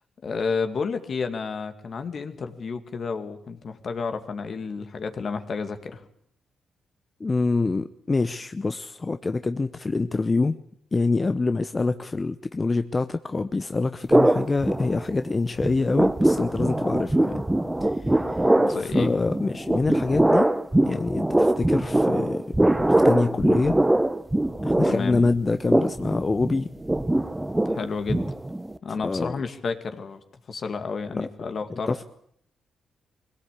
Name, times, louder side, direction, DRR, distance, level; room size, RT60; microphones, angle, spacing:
voice 1, 0.2-6.0 18.6-19.1 24.8-25.2 27.7-28.2 28.8-30.2 30.5-31.9, left 5 dB, 55° left, 7 dB, 2.2 m, -31 dB
voice 2, 7.2-10.6 10.9-17.4 17.8-18.4 18.7-20.5 20.9-22.5 23.0-23.7 24.6-26.7 29.0-29.3 31.2-31.3 31.7-32.0, left 3 dB, 30° left, 10 dB, 0.8 m, -25 dB
sound 1, 14.1-15.3 15.6-28.8, right 1 dB, 15° right, 1.0 m, -22 dB
22.0 x 17.0 x 8.4 m, 0.68 s
cardioid pair, 65°, 0 cm